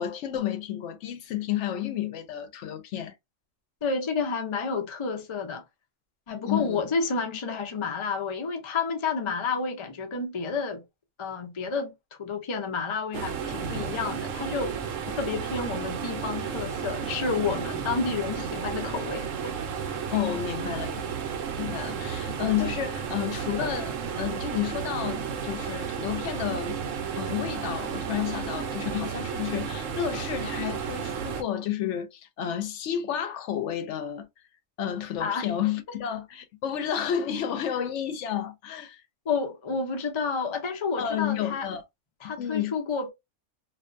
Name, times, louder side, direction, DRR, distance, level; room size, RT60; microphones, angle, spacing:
voice 1, 0.0-3.1 6.5-6.8 20.1-21.0 21.6-26.8 27.2-34.3 34.8-39.0 41.0-41.8 42.2-42.7, left 10 dB, 70° left, 0.8 m, -31 dB
voice 2, 3.8-5.6 6.3-10.8 11.2-11.9 12.2-14.7 15.2-19.5 35.2-35.5 39.3-41.7 42.2-43.1, left 5 dB, 50° left, 0.3 m, -30 dB
sound 1, 13.1-31.4, right 7 dB, 80° right, 1.0 m, -33 dB
2.4 x 2.2 x 2.4 m
omnidirectional pair, 1.3 m